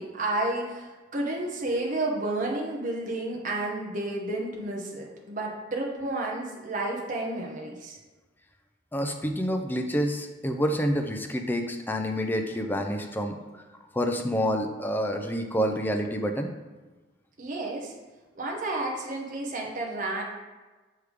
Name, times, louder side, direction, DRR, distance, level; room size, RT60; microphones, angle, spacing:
voice 1, 0.0-8.0 17.4-17.9 18.3-20.2, right 2 dB, 45° right, -1 dB, 0.9 m, -31 dB
voice 2, 8.9-13.3 13.9-16.5, equal, 10° left, 4 dB, 0.5 m, -28 dB
6.3 x 3.4 x 4.9 m, 1.2 s
head